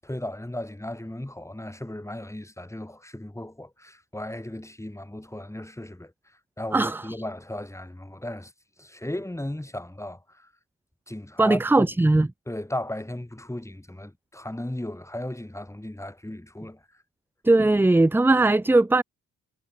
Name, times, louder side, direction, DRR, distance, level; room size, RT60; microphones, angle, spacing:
voice 1, 0.0-6.1 6.6-8.5 8.8-10.5 11.1-11.9 12.5-16.8, left 1 dB, 10° left, 7.4 m, -36 dB
voice 2, 11.4-12.3 17.4-19.0, right 2 dB, 5° right, 0.5 m, -19 dB
supercardioid pair, 60°, 32 cm